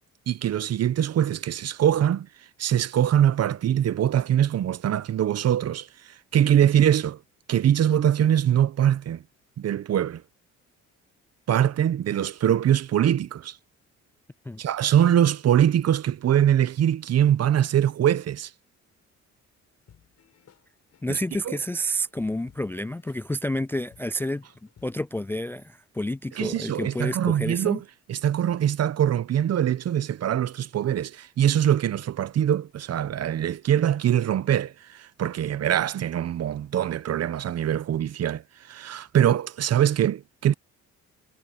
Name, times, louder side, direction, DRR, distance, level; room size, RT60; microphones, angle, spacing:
voice 1, 0.3-2.3 2.6-7.2 7.5-9.2 9.6-10.2 11.5-13.6 14.6-18.5 21.1-21.2 21.5-21.6 26.4-27.8 28.1-40.5, right 10 dB, 55° right, 0.9 m, -23 dB
sound 1, 19.9-25.1, left 8 dB, 60° left, 5.8 m, -58 dB
voice 2, 21.0-24.4 24.8-27.8, equal, 10° left, 0.3 m, -29 dB
cardioid pair, 90°, 30 cm